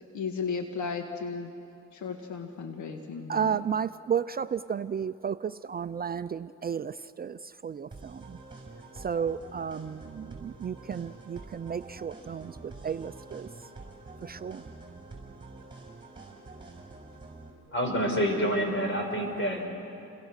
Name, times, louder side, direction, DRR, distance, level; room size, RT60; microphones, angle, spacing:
voice 1, 0.1-1.5 1.9-3.5, left 5 dB, 75° left, 5 dB, 1.7 m, -35 dB
voice 2, 3.3-8.4 8.9-13.5 14.2-14.6 18.9-19.1 19.4-19.5, right 7 dB, 30° right, 12 dB, 0.5 m, -33 dB
sound 1, 7.9-17.5, right 3 dB, 15° right, 6.0 m, -47 dB
voice 3, 17.7-19.7, equal, 40° left, 2 dB, 6.0 m, -27 dB
29.5 x 21.5 x 6.5 m, 2.8 s
cardioid pair, 90°, 30 cm